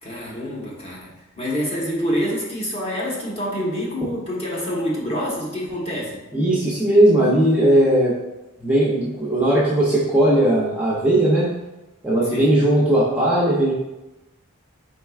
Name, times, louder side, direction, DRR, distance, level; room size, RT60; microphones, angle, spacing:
voice 1, 0.0-6.2 12.3-12.5, equal, 25° left, -5 dB, 1.0 m, -27 dB
voice 2, 6.3-8.1 8.6-11.5 12.0-13.7, right 1 dB, 5° right, -7 dB, 0.6 m, -18 dB
4.4 x 4.0 x 2.3 m, 0.99 s
head